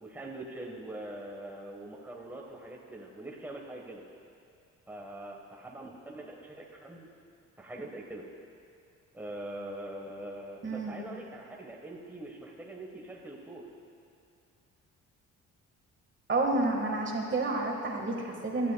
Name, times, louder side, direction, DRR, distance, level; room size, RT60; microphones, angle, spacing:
voice 1, 0.0-4.0 4.9-7.1 7.6-8.3 9.1-13.7, right 1 dB, 5° right, -1 dB, 1.2 m, -43 dB
voice 2, 10.6-11.0 16.3-18.7, right 2 dB, 40° right, 1 dB, 1.6 m, -30 dB
17.5 x 12.0 x 2.3 m, 2.5 s
cardioid pair, 90°, 30 cm